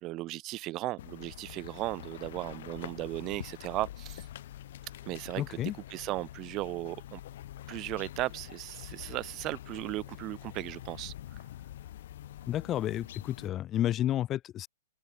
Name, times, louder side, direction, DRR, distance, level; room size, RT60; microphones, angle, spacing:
voice 1, 0.0-4.3 5.0-7.2 7.7-11.4, right 18 dB, 30° right, 1.6 m, -36 dB
sound 1, 1.0-13.5, left 13 dB, 60° left, 3.4 m, -46 dB
voice 2, 5.4-5.7 12.5-14.7, left 12 dB, 25° left, 1.6 m, -31 dB
open air
hypercardioid pair, 140°, 0 cm